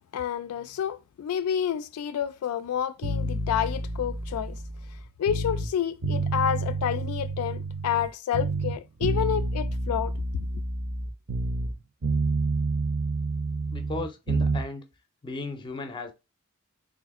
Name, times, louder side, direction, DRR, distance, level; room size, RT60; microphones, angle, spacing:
voice 1, 0.1-4.6 5.2-10.1, left 9 dB, 80° left, 0.3 m, -29 dB
sound 1, 3.0-5.7 6.0-8.1 8.3-11.8 12.0-14.6, right 2 dB, 50° right, 0.5 m, -29 dB
voice 2, 13.7-14.9 15.2-16.1, left 3 dB, 20° left, 0.5 m, -35 dB
3.4 x 2.5 x 3.5 m
head